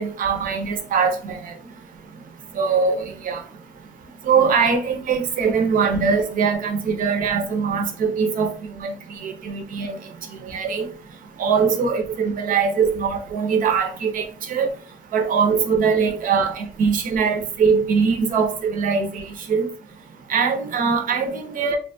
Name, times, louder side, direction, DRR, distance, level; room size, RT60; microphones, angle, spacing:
voice 1, 0.0-1.5 2.6-3.4 4.2-8.9 9.2-10.0 10.4-10.9 11.4-14.7 15.1-19.7 20.3-21.8, right 5 dB, 55° right, 0.7 m, -22 dB
2.8 x 2.2 x 2.6 m
cardioid pair, 110°, 17 cm